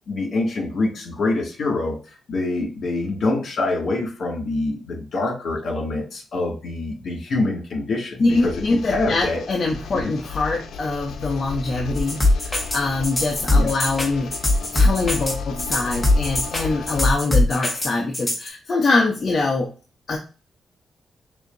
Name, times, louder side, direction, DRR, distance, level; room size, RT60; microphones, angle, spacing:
voice 1, 0.1-2.0 2.3-9.4 9.9-10.1 13.5-13.7, left 2 dB, 60° left, -1 dB, 2.2 m, -25 dB
voice 2, 8.2-14.3 14.7-19.7 20.1-20.2, left 3 dB, 45° left, 1 dB, 0.7 m, -23 dB
sound 1, 8.3-17.1, left 5 dB, 85° left, 0.6 m, -34 dB
sound 2, 11.9-18.5, left 2 dB, 15° left, 1.5 m, -21 dB
6.6 x 2.7 x 2.7 m, 0.35 s
cardioid pair, 90°, 0 cm